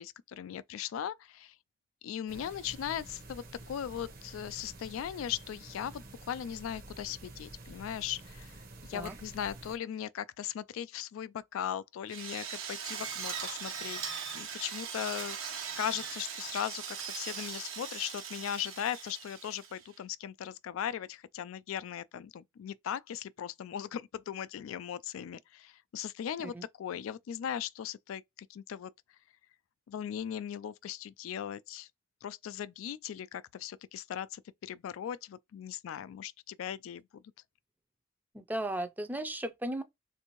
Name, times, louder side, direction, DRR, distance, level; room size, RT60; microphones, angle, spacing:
voice 1, 0.0-1.6 2.0-8.6 8.8-14.0 14.3-15.4 15.8-28.9 29.9-31.9 32.2-37.2, left 9 dB, 85° left, 0.3 m, -38 dB
sound 1, 2.3-9.8, right 2 dB, 45° right, 0.8 m, -49 dB
Drill, 12.1-19.9, right 7 dB, 85° right, 1.1 m, -40 dB
voice 2, 38.3-39.8, right 1 dB, 10° right, 0.4 m, -36 dB
3.4 x 2.6 x 2.9 m
head